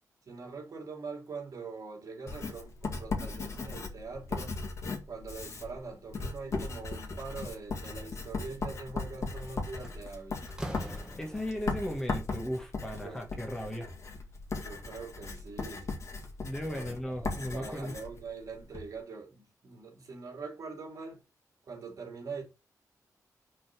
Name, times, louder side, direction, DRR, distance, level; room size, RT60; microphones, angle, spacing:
voice 1, 0.3-4.6 5.1-10.4 13.0-13.5 14.6-15.9 16.7-16.9 17.2-21.2 21.7-22.4, right 4 dB, 60° right, 2.9 m, -43 dB
Writing, 2.3-18.9, left 3 dB, 50° left, 1.9 m, -38 dB
Slam, 9.2-9.4 9.8-11.7, right 1 dB, 10° right, 1.2 m, -42 dB
voice 2, 11.2-13.9 16.4-17.9, equal, 10° left, 1.5 m, -36 dB
6.3 x 4.0 x 5.9 m
wide cardioid pair, 160°, 6 cm